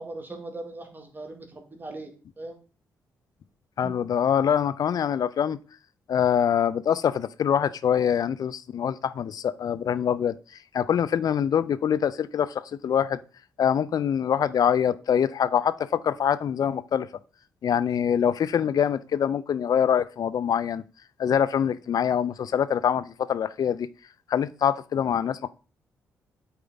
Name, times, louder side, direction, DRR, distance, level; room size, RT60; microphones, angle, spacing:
voice 1, 0.0-2.1 2.4-2.6 3.8-3.9, right 2 dB, 25° right, 2.1 m, -39 dB
voice 2, 3.8-5.6 6.1-10.4 10.7-13.2 13.6-17.1 17.6-20.8 21.2-23.9 24.3-25.5, left 8 dB, 55° left, 0.5 m, -24 dB
8.2 x 4.5 x 3.9 m
hypercardioid pair, 40°, 8 cm